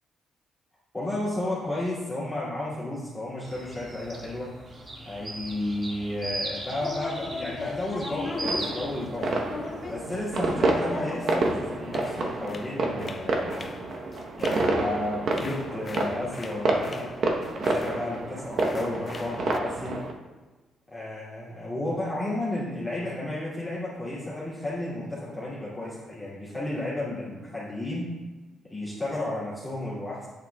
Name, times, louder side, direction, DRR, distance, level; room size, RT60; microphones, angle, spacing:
voice 1, 0.9-4.5 5.0-9.3 9.9-13.7 14.4-17.1 17.5-20.0 20.9-28.1 28.7-30.3, left 1 dB, 5° left, -10 dB, 2.3 m, -32 dB
sound 1, 3.4-11.9, right 2 dB, 40° right, 1.8 m, -39 dB
sound 2, 6.8-18.2 18.5-19.6, left 4 dB, 35° left, 0.4 m, -39 dB
sound 3, 8.3-20.1, right 2 dB, 60° right, 0.9 m, -29 dB
8.5 x 7.0 x 2.3 m, 1.2 s
cardioid pair, 95°, 0 cm